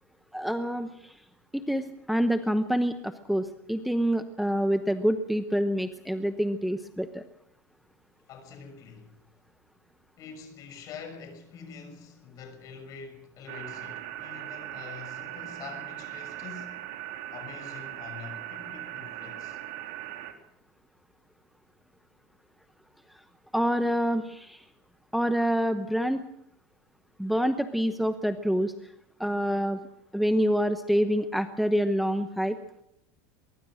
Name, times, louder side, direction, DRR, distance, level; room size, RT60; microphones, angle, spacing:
voice 1, 0.3-1.2 1.5-7.2 23.1-23.2 23.5-24.6 25.1-26.2 27.2-28.7 29.2-29.8 30.1-32.6, equal, ahead, 0.9 m, -27 dB
voice 2, 8.3-9.2 10.2-16.8 17.3-19.6, left 5 dB, 45° left, 6.5 m, -45 dB
sound 1, 13.5-20.3, right 13 dB, 70° right, 3.4 m, -39 dB
23.0 x 22.5 x 6.4 m
supercardioid pair, 135°, 9 cm